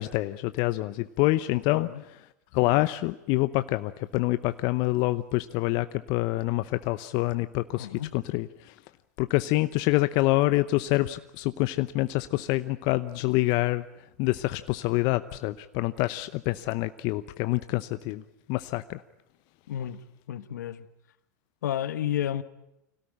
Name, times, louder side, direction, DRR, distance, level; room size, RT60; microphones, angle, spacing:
voice 1, 0.0-1.9 2.5-7.9 8.1-8.7 9.2-13.8 14.2-18.2 18.5-19.0, left 19 dB, 50° left, 13 dB, 0.8 m, -26 dB
voice 2, 1.5-2.0 7.8-8.1 19.7-20.0 20.3-20.8 21.6-22.4, left 11 dB, 75° left, 13 dB, 1.3 m, -31 dB
25.5 x 17.5 x 10.0 m, 0.90 s
hypercardioid pair, 100°, 9 cm